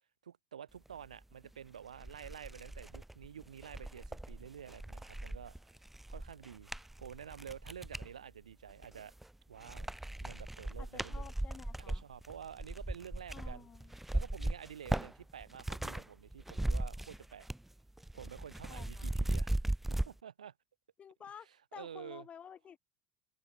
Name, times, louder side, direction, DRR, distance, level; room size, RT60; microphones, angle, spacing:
voice 1, 0.2-5.5 6.1-6.7 7.0-9.1 9.5-9.9 10.2-11.3 11.8-13.7 14.1-17.5 18.1-19.5 19.9-20.5 21.7-22.3, right 8 dB, 90° right, 5.1 m, -49 dB
sound 1, 1.4-1.5 2.0-8.1 8.7-9.3 9.6-16.1 16.3-17.7 18.0-20.1, right 1 dB, 5° right, 0.5 m, -38 dB
voice 2, 10.8-12.0 13.3-14.0 18.7-19.1 21.0-22.8, left 8 dB, 35° left, 3.2 m, -52 dB
hypercardioid pair, 75°, 4 cm